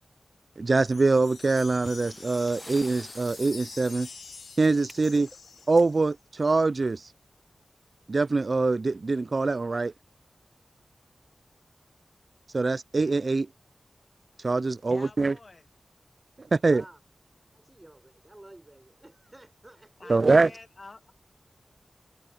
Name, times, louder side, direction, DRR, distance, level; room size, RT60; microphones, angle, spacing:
voice 1, 0.6-4.1 4.6-5.3 5.7-7.0 8.1-9.9 12.5-13.5 14.4-15.3 16.4-16.8 20.1-20.5, right 3 dB, 55° right, 0.3 m, -24 dB
sound 1, 0.8-6.1, left 5 dB, 90° left, 0.6 m, -46 dB
sound 2, 1.6-7.0 8.2-8.4 8.7-8.8 9.4-9.5 10.2-10.5, equal, 5° right, 1.4 m, -50 dB
voice 2, 14.9-15.7 20.0-21.1, left 3 dB, 50° left, 1.5 m, -48 dB
voice 3, 16.6-17.0 17.5-20.6, right 1 dB, 20° right, 5.0 m, -51 dB
wide cardioid pair, 75°, 0 cm